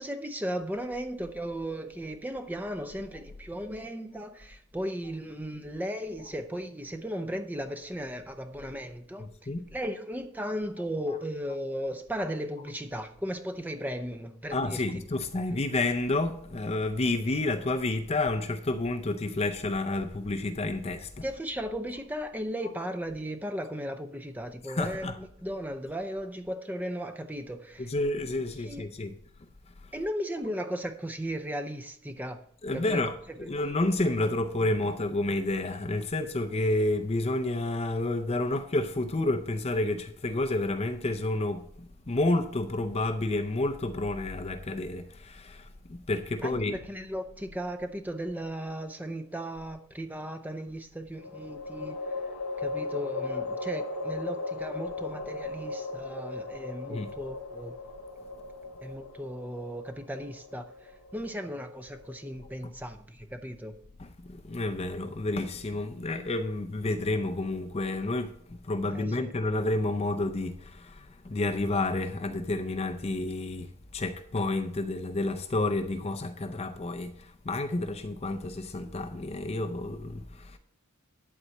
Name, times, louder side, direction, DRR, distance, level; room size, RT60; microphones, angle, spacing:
voice 1, 0.0-9.3 9.7-14.8 21.2-27.9 28.6-28.9 29.9-32.4 32.7-33.0 33.4-33.5 46.4-52.1 52.6-57.7 58.8-63.8 68.9-69.3, equal, 10° right, 0.7 m, -36 dB
voice 2, 9.2-9.7 14.5-21.3 24.6-25.2 27.8-29.2 29.8-29.9 32.6-46.9 56.9-57.1 64.0-80.6, left 2 dB, 30° left, 0.5 m, -30 dB
sound 1, 48.1-48.9 51.2-62.5, left 3 dB, 85° left, 1.7 m, -37 dB
11.0 x 4.2 x 7.0 m
head